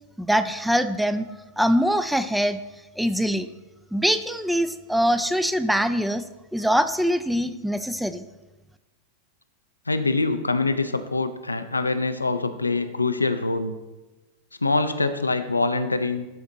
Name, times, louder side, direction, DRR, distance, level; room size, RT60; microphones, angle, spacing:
voice 1, 0.2-1.3 1.6-2.6 3.0-3.5 3.9-6.2 6.5-8.2, equal, ahead, 11 dB, 0.4 m, -23 dB
voice 2, 9.9-13.7 14.6-16.3, left 3 dB, 80° left, 9 dB, 0.5 m, -24 dB
12.0 x 4.4 x 3.9 m, 1.1 s
figure-of-eight pair, 90°, 0 cm